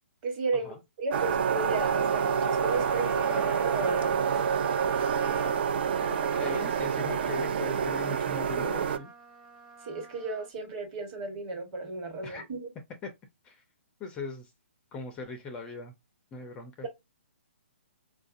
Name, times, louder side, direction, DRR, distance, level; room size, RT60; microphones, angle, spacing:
voice 1, 0.2-4.7 6.4-6.6 9.8-12.7, right 3 dB, 30° right, 1.4 m, -35 dB
sound 1, 1.1-9.0, right 7 dB, 50° right, 0.5 m, -27 dB
Trumpet, 1.8-10.5, right 3 dB, 10° right, 0.8 m, -45 dB
voice 2, 6.1-9.1 12.2-12.4 13.4-13.6 14.0-14.5 14.9-15.9 16.3-16.9, left 3 dB, 15° left, 0.4 m, -40 dB
4.5 x 2.5 x 2.5 m
hypercardioid pair, 155°, 7 cm